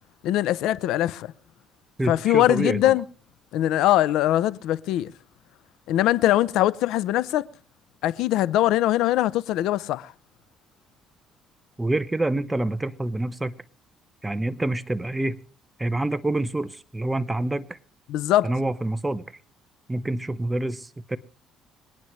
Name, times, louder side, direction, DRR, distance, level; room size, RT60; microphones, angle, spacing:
voice 1, 0.2-1.3 2.1-3.0 3.5-5.1 5.9-7.5 8.0-10.1 18.1-18.5, left 14 dB, 80° left, 0.6 m, -22 dB
voice 2, 2.0-3.0 11.8-13.6 14.2-15.4 15.8-17.8 18.4-19.2 19.9-21.2, right 2 dB, 10° right, 0.8 m, -27 dB
26.5 x 9.5 x 3.1 m
cardioid pair, 110°, 0 cm